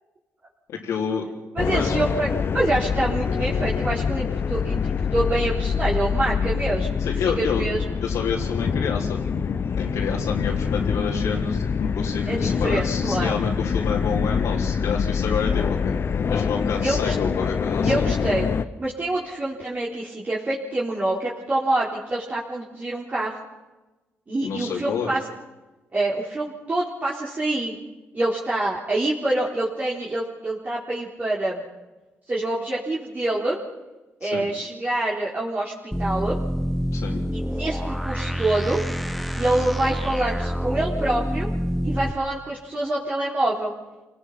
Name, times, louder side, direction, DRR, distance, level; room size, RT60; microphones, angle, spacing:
voice 1, 0.7-1.2 1.7-2.0 7.0-7.6 8.0-9.2 9.8-15.9 16.3-18.1 24.4-25.1 34.2-34.5 36.9-37.2, left 6 dB, 85° left, -4 dB, 3.3 m, -28 dB
voice 2, 1.5-7.9 12.3-13.4 16.8-17.1 17.8-18.5 18.8-23.3 24.3-25.2 25.9-27.8 28.1-31.6 32.3-33.6 34.2-36.4 37.3-38.8 39.3-41.5 41.8-43.7, right 2 dB, 30° right, -6 dB, 4.2 m, -26 dB
sound 1, 1.6-18.6, left 6 dB, 50° left, 1.0 m, -25 dB
sound 2, 35.9-42.1, equal, ahead, 1.2 m, -27 dB
28.0 x 18.5 x 5.8 m, 1.1 s
cardioid pair, 85°, 5 cm